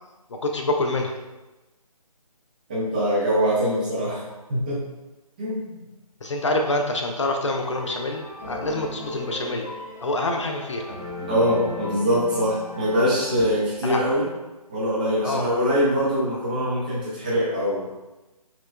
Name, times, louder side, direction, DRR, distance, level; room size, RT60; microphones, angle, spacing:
voice 1, 0.3-1.1 6.2-9.7 10.0-11.0 13.8-14.0 15.2-15.5, left 2 dB, 50° left, 3 dB, 0.4 m, -26 dB
voice 2, 2.7-4.2 4.5-4.8 5.4-5.8 11.3-14.3 14.7-17.8, equal, 15° right, -9 dB, 0.6 m, -23 dB
sound 1, 7.5-13.5, left 1 dB, 25° left, 0.8 m, -37 dB
5.8 x 2.2 x 2.3 m, 1.1 s
figure-of-eight pair, 165°, 20 cm